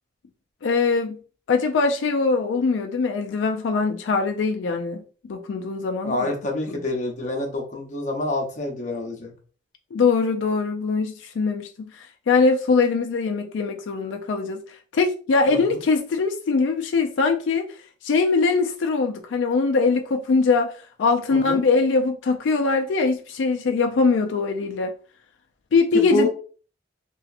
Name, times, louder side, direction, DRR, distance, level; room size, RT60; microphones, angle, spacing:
voice 1, 0.6-1.2 1.5-5.0 5.3-6.3 6.7-6.8 9.9-14.6 14.9-17.7 18.0-20.7 21.0-24.9 25.7-26.3, left 4 dB, 85° left, 0.4 m, -22 dB
voice 2, 6.0-9.3 15.5-15.8 21.3-21.6 25.9-26.3, left 2 dB, 40° left, 0.7 m, -27 dB
3.0 x 2.8 x 2.4 m
head